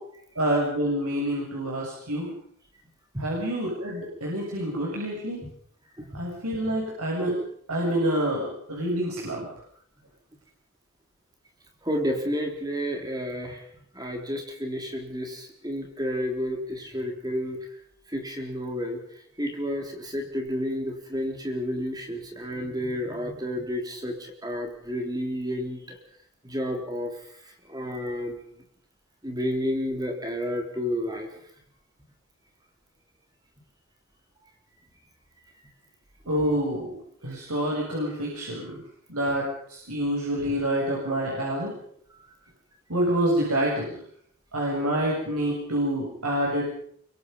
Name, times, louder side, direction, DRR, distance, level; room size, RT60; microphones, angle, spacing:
voice 1, 0.4-2.3 3.2-5.4 6.1-7.3 7.7-9.5 36.3-36.9 37.2-38.8 39.1-41.7 42.9-44.0 44.5-46.9, right 1 dB, 90° right, -3 dB, 7.2 m, -27 dB
voice 2, 11.8-13.6 14.0-17.6 18.1-19.0 19.4-26.0 26.4-27.1 27.7-28.4 29.2-31.3 36.4-36.5, equal, 15° right, 3 dB, 3.6 m, -31 dB
24.5 x 24.0 x 5.4 m, 0.64 s
head